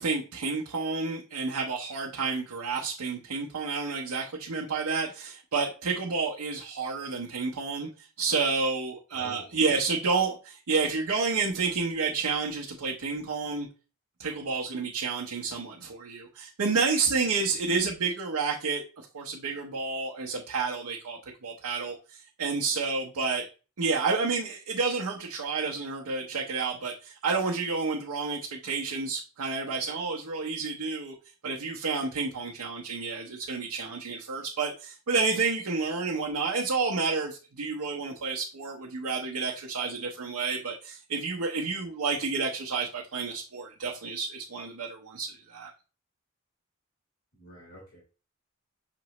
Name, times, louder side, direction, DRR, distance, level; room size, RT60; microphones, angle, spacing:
voice 1, 0.0-7.9 8.2-13.7 14.2-23.5 23.8-31.1 31.4-45.7, right 4 dB, 85° right, -1 dB, 0.7 m, -30 dB
voice 2, 9.1-9.7 47.3-48.0, left 1 dB, 70° left, -5 dB, 2.0 m, -49 dB
5.9 x 3.0 x 2.9 m, 0.34 s
head